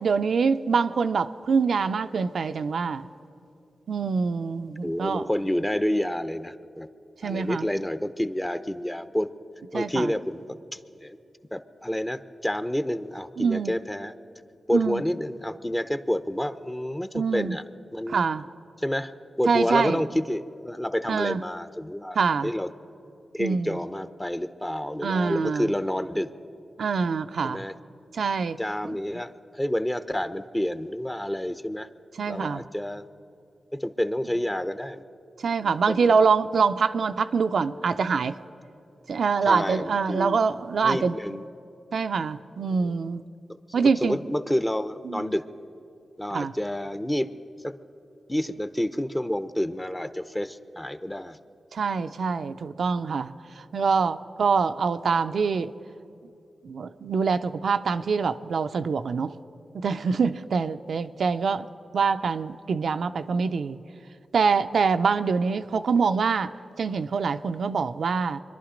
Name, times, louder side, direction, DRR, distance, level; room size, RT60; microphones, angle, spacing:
voice 1, 0.0-3.1 3.9-5.2 7.2-7.7 9.7-10.1 13.4-13.7 14.7-15.0 17.1-17.6 18.1-18.4 19.5-20.0 21.1-21.4 22.2-22.5 23.4-23.8 25.0-25.7 26.8-27.6 28.1-28.6 32.2-32.6 35.4-38.3 39.1-41.1 41.9-43.2 43.7-44.2 45.1-45.3 46.3-46.5 51.7-55.7 56.6-59.3 59.7-61.7 61.9-63.8 64.3-68.4, right 5 dB, 75° right, 0.4 m, -25 dB
voice 2, 4.8-6.9 7.2-9.3 9.7-11.2 11.5-14.1 14.7-17.6 17.9-18.2 18.8-19.1 19.4-22.7 23.3-26.3 27.4-27.8 28.6-31.9 32.3-33.1 33.7-35.0 35.6-36.3 39.4-40.4 40.8-41.4 42.8-43.0 43.8-45.4 46.2-47.3 47.6-47.7 48.3-51.4, equal, 15° left, 0.8 m, -29 dB
25.0 x 11.0 x 5.1 m
cardioid pair, 45°, 0 cm